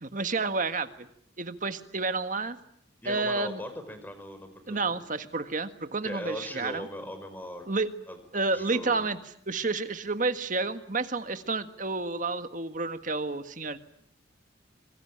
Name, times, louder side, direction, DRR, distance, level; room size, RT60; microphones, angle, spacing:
voice 1, 0.0-1.1 1.4-2.6 3.1-3.6 4.7-6.9 7.7-7.9 8.3-9.2 9.5-13.8, right 3 dB, 40° right, 10 dB, 1.6 m, -30 dB
voice 2, 3.0-5.0 6.0-7.7 8.1-8.2 8.5-9.1, equal, 10° left, 9 dB, 5.0 m, -39 dB
26.5 x 23.5 x 8.8 m, 0.69 s
head